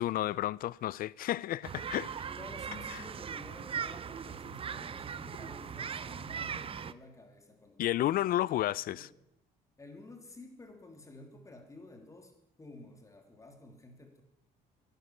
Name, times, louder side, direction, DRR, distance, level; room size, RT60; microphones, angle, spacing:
voice 1, 0.0-2.1 7.8-9.1, left 14 dB, 60° left, 0.5 m, -31 dB
sound 1, 1.6-6.9, right 7 dB, 35° right, 0.6 m, -39 dB
voice 2, 2.0-9.2 9.8-14.2, left 2 dB, 20° left, 2.9 m, -52 dB
12.0 x 11.5 x 9.6 m
cardioid pair, 110°, 17 cm